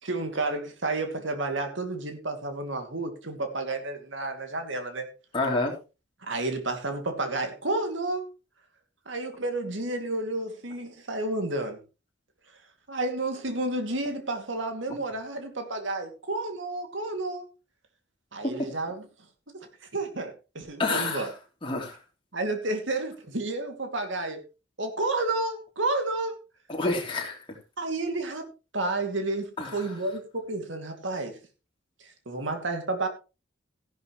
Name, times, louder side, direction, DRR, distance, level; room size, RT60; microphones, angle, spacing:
voice 1, 0.0-5.1 6.2-8.3 9.1-11.8 12.9-17.4 18.3-19.1 19.5-19.7 19.9-21.3 22.3-24.4 24.8-26.4 27.8-28.5 28.7-31.4 32.3-33.1, right 2 dB, 75° right, 2.5 m, -31 dB
voice 2, 5.3-5.7 20.8-21.3 21.6-22.0 26.7-27.4 29.6-29.8, left 3 dB, 25° left, 3.3 m, -28 dB
14.5 x 11.5 x 3.1 m
head